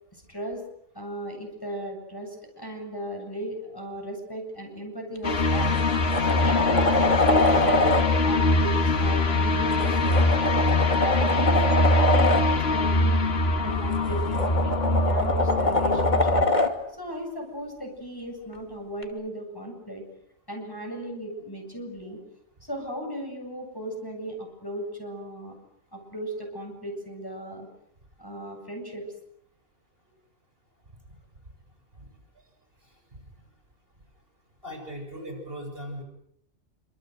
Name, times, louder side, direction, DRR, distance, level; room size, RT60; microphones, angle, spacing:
voice 1, 0.1-0.6 0.9-10.4 10.9-13.1 13.6-16.5 17.0-20.0 20.5-22.2 22.6-25.5 25.9-27.7 28.2-29.1, equal, 15° left, 1 dB, 7.8 m, -36 dB
sound 1, 5.2-16.4, left 2 dB, 50° left, 2.1 m, -23 dB
sound 2, 5.2-5.3 5.8-8.0 9.7-12.4 13.9-16.7 19.0-19.1, left 2 dB, 35° left, 2.8 m, -24 dB
voice 2, 34.6-36.0, equal, 45° right, 3 dB, 7.9 m, -38 dB
28.0 x 27.0 x 8.0 m, 0.74 s
omnidirectional pair, 1.4 m